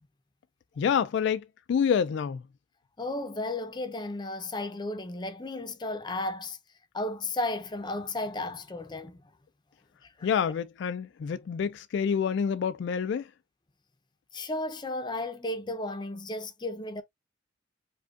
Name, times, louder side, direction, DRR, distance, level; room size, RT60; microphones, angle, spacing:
voice 1, 0.8-2.4 10.2-13.3, left 7 dB, 65° left, 0.3 m, -27 dB
voice 2, 3.0-6.6 6.9-9.3 10.0-10.3 14.3-17.0, left 2 dB, 25° left, 0.6 m, -34 dB
5.0 x 2.3 x 2.4 m
head